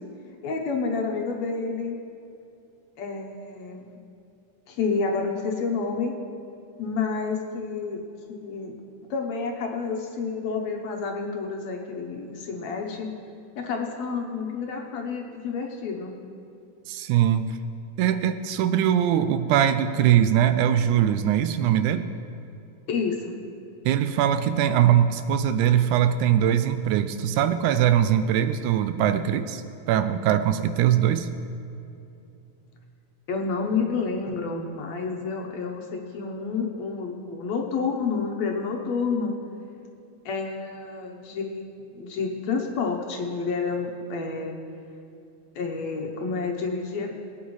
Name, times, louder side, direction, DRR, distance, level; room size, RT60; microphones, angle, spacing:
voice 1, 0.4-2.0 3.0-4.0 4.7-6.2 6.8-8.0 8.3-8.7 9.1-13.1 13.6-16.1 22.9-23.4 33.3-39.4 40.3-41.7 42.0-44.5 45.6-47.1, left 4 dB, 70° left, 1 dB, 2.0 m, -29 dB
voice 2, 16.9-17.6 18.0-22.1 23.9-31.3, right 10 dB, 80° right, 10 dB, 1.9 m, -21 dB
21.0 x 9.4 x 3.1 m, 2.7 s
omnidirectional pair, 3.6 m